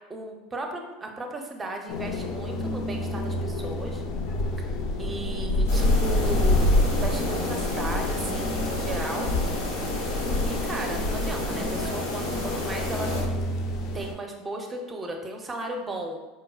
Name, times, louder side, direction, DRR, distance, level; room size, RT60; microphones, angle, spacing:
voice 1, 0.1-4.0 4.6-6.6 7.0-9.3 10.4-13.1 13.9-16.2, right 2 dB, 25° right, 3 dB, 0.5 m, -36 dB
sound 1, 1.9-14.1, left 1 dB, 60° left, 0.3 m, -27 dB
sound 2, 5.7-13.2, left 1 dB, 85° left, 0.7 m, -31 dB
4.2 x 2.1 x 2.3 m, 1.1 s
hypercardioid pair, 85°, 0 cm